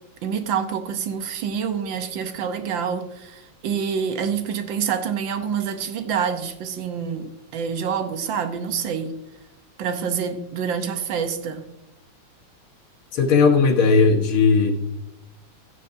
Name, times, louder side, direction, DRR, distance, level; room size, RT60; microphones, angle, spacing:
voice 1, 0.2-9.2 9.8-11.6, right 7 dB, 70° right, 1.5 m, -27 dB
voice 2, 13.1-14.7, left 4 dB, 80° left, 2.1 m, -17 dB
15.5 x 7.3 x 2.6 m
omnidirectional pair, 2.3 m